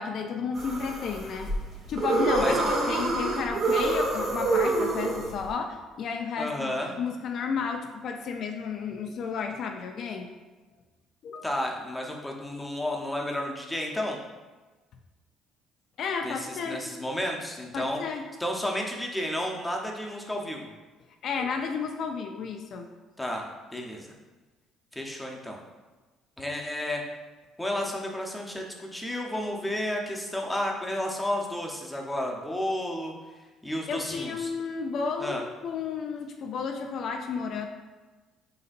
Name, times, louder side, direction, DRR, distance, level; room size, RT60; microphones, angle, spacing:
voice 1, 0.0-1.5 1.9-10.3 11.2-11.5 16.0-16.8 17.7-18.2 21.2-22.9 33.9-37.7, left 5 dB, 60° left, 4 dB, 0.4 m, -32 dB
sound 1, 0.5-5.5, right 2 dB, 55° right, 1.2 m, -26 dB
voice 2, 6.4-6.9 11.4-14.2 16.2-18.0 18.4-20.7 23.2-24.1 24.9-25.6 26.4-27.0 27.6-33.1 33.6-34.5 35.2-35.4, left 1 dB, 10° left, 0 dB, 0.8 m, -32 dB
4.9 x 3.9 x 2.5 m, 1.3 s
supercardioid pair, 75°, 0 cm